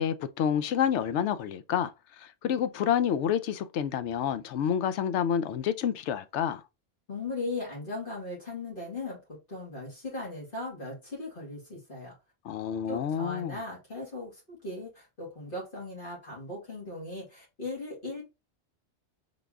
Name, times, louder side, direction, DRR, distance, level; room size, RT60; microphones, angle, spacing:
voice 1, 0.0-1.9 2.2-6.6 12.4-13.6, left 9 dB, 90° left, 0.9 m, -28 dB
voice 2, 7.1-12.1 12.9-18.2, left 2 dB, 50° left, 2.4 m, -38 dB
4.0 x 3.4 x 3.6 m
omnidirectional pair, 1.1 m